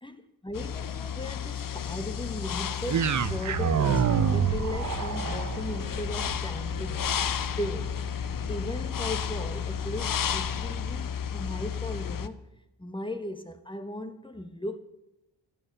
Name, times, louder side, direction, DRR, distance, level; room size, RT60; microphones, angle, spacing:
voice 1, 0.0-12.4 12.8-14.8, left 1 dB, 10° left, 1.2 m, -37 dB
sound 1, 0.5-12.3, left 8 dB, 50° left, 0.8 m, -32 dB
sound 2, 2.9-11.1, right 8 dB, 45° right, 0.8 m, -30 dB
14.5 x 9.2 x 6.7 m
cardioid pair, 80°, 43 cm